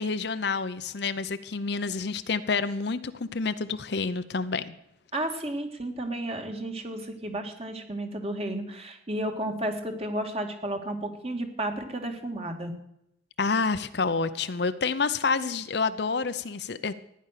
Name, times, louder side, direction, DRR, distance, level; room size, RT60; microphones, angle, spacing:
voice 1, 0.0-4.7 13.4-16.9, left 4 dB, 55° left, 12 dB, 0.7 m, -28 dB
voice 2, 5.1-12.7, right 1 dB, 30° right, 5 dB, 2.0 m, -32 dB
15.0 x 10.5 x 6.7 m, 0.79 s
head